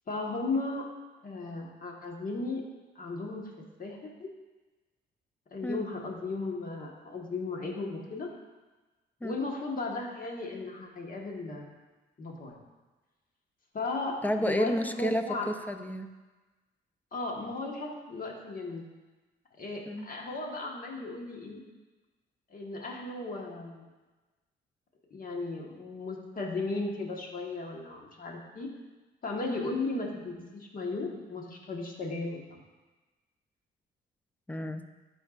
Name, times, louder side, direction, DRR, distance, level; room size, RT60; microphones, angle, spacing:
voice 1, 0.1-0.8 1.2-2.6 2.9-3.5 3.8-4.3 5.5-8.3 9.2-11.7 12.2-12.6 13.7-15.5 17.1-18.8 19.6-21.6 22.5-23.9 25.1-28.7 29.2-32.6, left 3 dB, 45° left, 0 dB, 1.4 m, -36 dB
voice 2, 14.2-16.1 19.9-20.0 34.5-34.9, equal, 10° left, 8 dB, 0.5 m, -31 dB
12.0 x 4.5 x 2.5 m, 1.2 s
cardioid pair, 90°, 20 cm